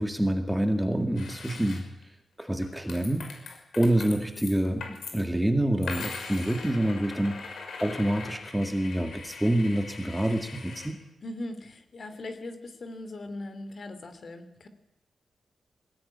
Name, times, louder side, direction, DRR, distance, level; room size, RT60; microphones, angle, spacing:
voice 1, 0.0-2.0 2.4-3.5 3.8-11.0, right 1 dB, 5° right, 6 dB, 2.0 m, -27 dB
sound 1, 1.2-2.0 2.4-5.2 5.8-10.9, left 4 dB, 70° left, 6.1 m, -41 dB
voice 2, 11.2-14.7, left 2 dB, 45° left, 9 dB, 3.2 m, -39 dB
22.5 x 19.0 x 9.9 m, 0.91 s
wide cardioid pair, 150°, 0 cm